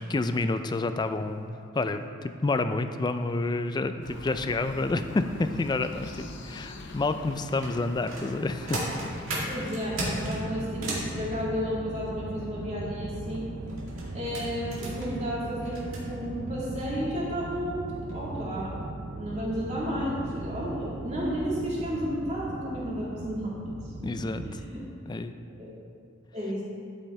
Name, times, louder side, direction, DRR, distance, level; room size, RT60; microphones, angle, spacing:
voice 1, 0.0-1.5 1.7-8.8 24.0-24.6 25.1-25.3, left 2 dB, 20° left, 9 dB, 0.3 m, -29 dB
sound 1, 4.0-9.7, left 1 dB, 60° left, 0.7 m, -42 dB
sound 2, 7.3-11.1 13.6-16.0 16.8-16.9 17.3-17.5 17.9-18.2 18.5-18.6, right 1 dB, 90° right, 1.9 m, -36 dB
voice 2, 9.4-13.5 14.1-18.7 19.2-23.5 24.0-24.1 24.4-24.8 25.6-25.7 26.3-26.6, equal, 35° right, -7 dB, 2.3 m, -32 dB
sound 3, 9.9-24.6, right 2 dB, 60° right, 0.6 m, -38 dB
11.0 x 5.4 x 4.3 m, 2.3 s
head